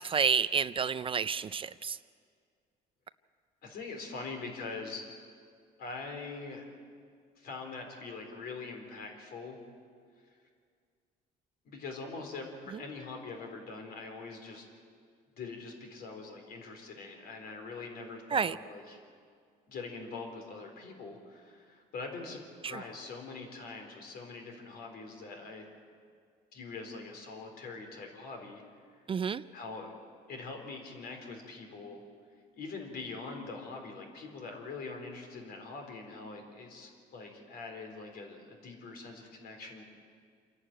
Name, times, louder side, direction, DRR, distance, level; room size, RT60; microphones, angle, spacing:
voice 1, 0.0-2.0 18.3-18.6 22.6-22.8 29.1-29.4, right 6 dB, 30° right, 15 dB, 0.4 m, -30 dB
voice 2, 3.6-5.0 5.8-6.7 7.4-9.6 11.6-14.7 15.4-19.0 19.7-25.7 26.5-28.6 29.5-29.9 30.3-32.0 32.5-39.8, left 3 dB, 65° left, 3 dB, 4.1 m, -43 dB
27.0 x 11.0 x 9.0 m, 2.1 s
cardioid pair, 110°, 17 cm